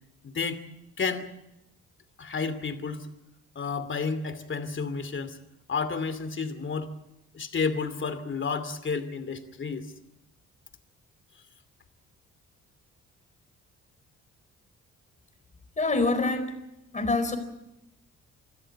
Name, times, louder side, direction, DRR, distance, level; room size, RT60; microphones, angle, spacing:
voice 1, 0.2-0.6 1.0-1.3 2.2-3.1 3.5-5.4 5.7-6.9 7.3-9.9, left 5 dB, 40° left, 12 dB, 2.6 m, -31 dB
voice 2, 15.8-16.6 16.9-17.4, left 3 dB, 25° left, 9 dB, 4.4 m, -25 dB
26.5 x 13.5 x 8.8 m, 0.89 s
cardioid pair, 90°, 30 cm